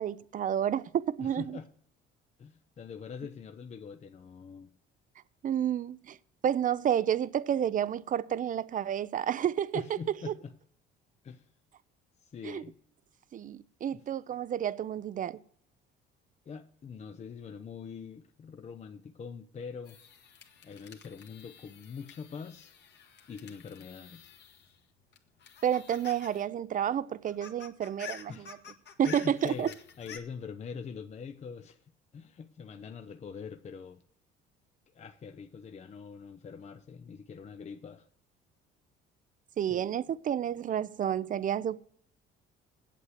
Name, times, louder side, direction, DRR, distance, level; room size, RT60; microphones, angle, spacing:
voice 1, 0.0-1.6 5.4-6.2 6.4-10.0 10.3-10.4 12.4-12.6 13.3-15.4 25.6-28.6 29.0-29.7 39.6-41.8, right 9 dB, 40° right, 0.5 m, -30 dB
voice 2, 1.2-1.7 2.4-4.7 9.7-10.5 11.2-11.5 12.2-12.8 13.9-14.0 16.5-20.0 20.6-22.7 23.3-24.4 28.3-28.5 29.0-34.0 34.9-38.1 39.7-39.8, left 6 dB, 35° left, 0.6 m, -44 dB
sound 1, 19.9-24.8 25.1-26.5 26.7-26.8 27.1-30.2, left 8 dB, 55° left, 1.6 m, -50 dB
8.4 x 8.1 x 8.1 m
supercardioid pair, 90°, 21 cm